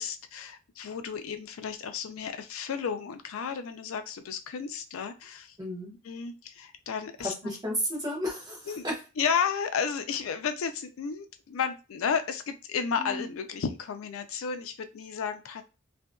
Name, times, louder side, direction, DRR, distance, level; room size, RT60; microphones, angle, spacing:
voice 1, 0.0-5.6 6.1-7.3 8.7-8.8 9.2-15.6, left 6 dB, 90° left, 8 dB, 0.4 m, -32 dB
voice 2, 5.6-5.9 7.2-9.0 13.0-13.3, equal, 20° right, -4 dB, 1.0 m, -33 dB
2.7 x 2.6 x 2.2 m, 0.30 s
head